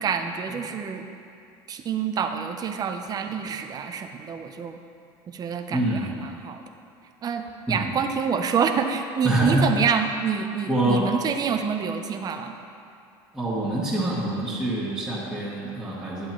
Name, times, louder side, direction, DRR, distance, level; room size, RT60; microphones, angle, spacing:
voice 1, 0.0-1.0 1.7-4.8 5.3-6.6 7.2-12.5, right 6 dB, 35° right, 6 dB, 0.6 m, -27 dB
voice 2, 5.7-6.1 7.7-7.9 9.2-9.7 10.7-11.1 13.3-16.3, right 1 dB, 5° right, -12 dB, 1.9 m, -25 dB
10.0 x 7.7 x 3.1 m, 2.6 s
supercardioid pair, 100°, 11 cm